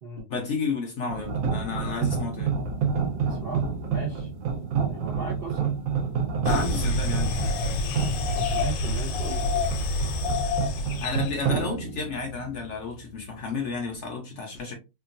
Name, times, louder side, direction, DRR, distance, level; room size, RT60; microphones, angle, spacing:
voice 1, 0.3-2.6 6.4-7.4 11.0-14.7, left 4 dB, 65° left, 0.7 m, -32 dB
sound 1, 1.1-13.0, right 6 dB, 85° right, 1.5 m, -29 dB
voice 2, 3.1-4.3 4.9-5.7 8.3-9.7, right 4 dB, 65° right, 0.5 m, -36 dB
sound 2, 6.4-11.4, left 2 dB, 85° left, 1.3 m, -27 dB
3.4 x 2.2 x 2.5 m
omnidirectional pair, 1.9 m